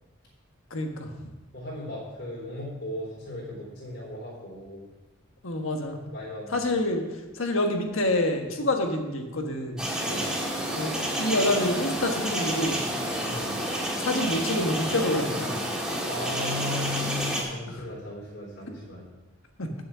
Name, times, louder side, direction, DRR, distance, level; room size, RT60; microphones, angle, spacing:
voice 1, 0.7-1.1 5.4-6.0 6.5-7.0 7.3-9.8 10.8-10.9 11.2-12.8 14.0-15.5 19.6-19.7, left 1 dB, 75° left, 3 dB, 1.4 m, -27 dB
voice 2, 1.5-4.8 6.1-6.6 10.0-10.3 13.3-13.5 16.1-19.1, left 2 dB, 50° left, -5 dB, 3.9 m, -36 dB
sound 1, 9.8-17.4, equal, 5° right, 1.9 m, -29 dB
9.3 x 7.5 x 6.1 m, 1.1 s
head